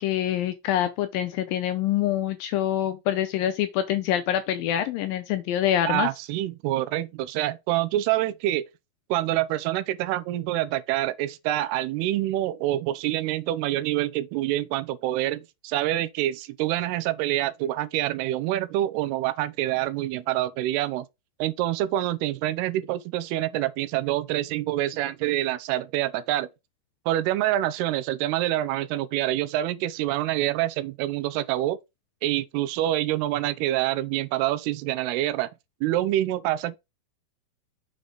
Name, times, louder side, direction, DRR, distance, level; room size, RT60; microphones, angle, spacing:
voice 1, 0.0-6.1, left 11 dB, 85° left, 2.0 m, -25 dB
voice 2, 5.9-8.7 9.1-21.1 21.4-26.5 27.1-31.8 32.2-35.5 35.8-36.8, right 14 dB, 80° right, 2.6 m, -26 dB
6.9 x 3.8 x 5.1 m
omnidirectional pair, 4.7 m